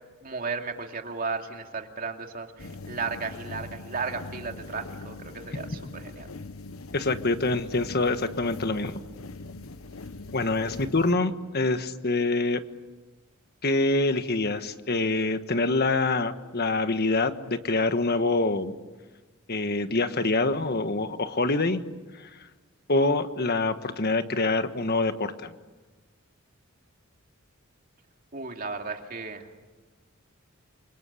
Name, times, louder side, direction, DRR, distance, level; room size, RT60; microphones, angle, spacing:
voice 1, 0.2-6.3 28.3-29.5, right 4 dB, 45° right, 3 dB, 2.6 m, -34 dB
sound 1, 2.6-11.1, left 3 dB, 85° left, 1.0 m, -42 dB
voice 2, 6.9-9.0 10.3-12.6 13.6-18.7 19.5-21.8 22.2-22.3 22.9-25.5, left 2 dB, 50° left, 9 dB, 1.5 m, -25 dB
28.5 x 24.5 x 8.5 m, 1.3 s
head